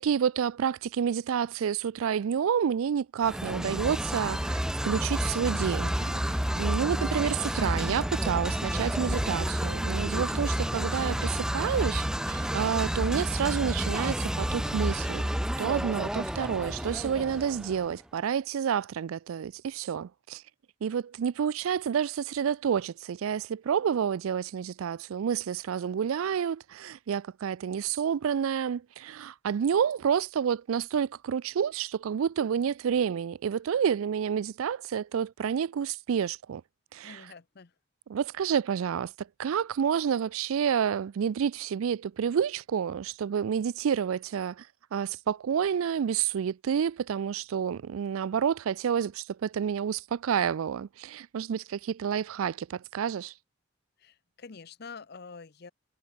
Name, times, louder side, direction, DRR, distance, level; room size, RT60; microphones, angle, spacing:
voice 1, 0.0-15.3 15.6-20.4 20.8-36.6 36.9-37.3 38.1-53.3, right 7 dB, 80° right, 0.4 m, -29 dB
sound 1, 3.2-17.9, equal, 5° right, 0.5 m, -30 dB
voice 2, 9.9-10.4 37.0-37.7 54.0-55.7, left 4 dB, 50° left, 0.7 m, -47 dB
head